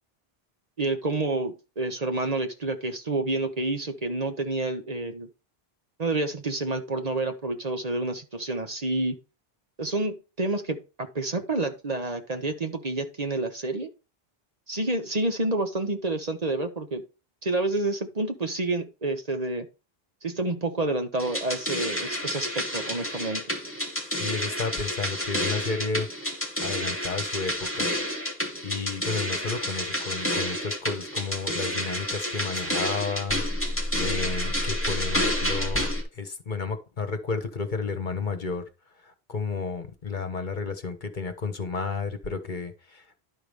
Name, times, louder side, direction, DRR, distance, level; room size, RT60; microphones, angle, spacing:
voice 1, 0.8-5.3 6.0-9.2 9.8-13.9 14.7-17.0 17.4-19.7 20.2-23.4, right 2 dB, 40° right, 6 dB, 1.2 m, -29 dB
sound 1, 21.2-36.0, equal, 10° left, 2.6 m, -29 dB
voice 2, 24.1-26.1 26.6-27.9 28.6-33.4 34.0-38.6 39.0-43.2, left 4 dB, 50° left, 8 dB, 1.2 m, -32 dB
11.0 x 4.9 x 5.3 m, 0.30 s
omnidirectional pair, 1.0 m